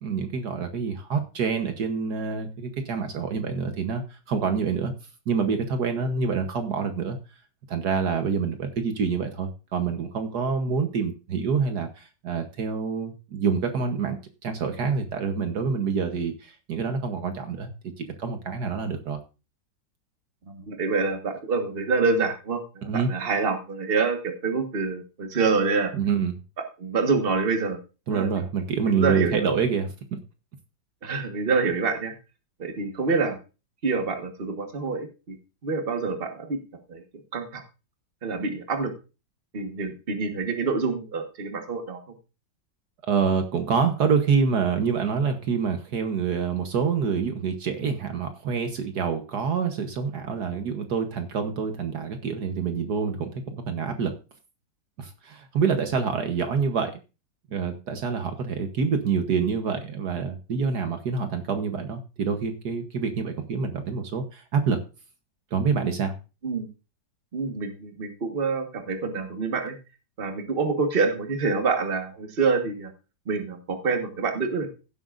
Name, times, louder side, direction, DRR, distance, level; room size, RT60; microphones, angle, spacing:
voice 1, 0.0-4.9 5.3-7.2 7.7-14.2 14.4-17.7 18.2-19.2 22.9-23.1 25.9-26.3 28.1-29.9 43.1-54.1 55.0-56.9 57.5-64.8 65.5-66.2, right 5 dB, 65° right, 7 dB, 1.6 m, -26 dB
voice 2, 20.5-25.9 26.8-27.8 28.1-28.3 28.9-29.5 31.0-32.1 32.6-33.4 33.8-35.4 35.6-36.6 36.9-37.0 37.3-37.6 38.2-38.9 39.5-42.0 66.4-66.7 67.3-69.8 70.2-72.9 73.3-74.7, right 4 dB, 35° right, 5 dB, 1.5 m, -26 dB
16.5 x 7.8 x 2.5 m, 0.31 s
omnidirectional pair, 1.9 m